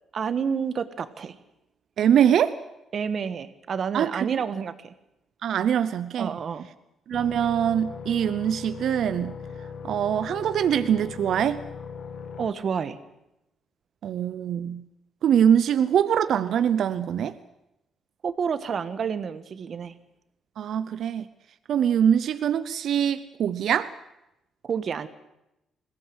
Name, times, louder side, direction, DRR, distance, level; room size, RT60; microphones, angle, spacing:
voice 1, 0.1-1.3 2.9-4.9 6.2-6.7 12.4-13.0 18.2-19.9 24.6-25.1, right 6 dB, 50° right, 12 dB, 1.4 m, -29 dB
voice 2, 2.0-2.6 3.9-4.4 5.4-6.4 7.1-9.3 9.8-11.6 14.0-14.8 15.2-17.3 20.6-21.2 21.7-23.9, right 9 dB, 70° right, 13 dB, 0.7 m, -23 dB
sound 1, 7.1-12.5, left 6 dB, 60° left, 1.6 m, -39 dB
21.0 x 16.5 x 8.1 m, 0.88 s
cardioid pair, 90°, 0 cm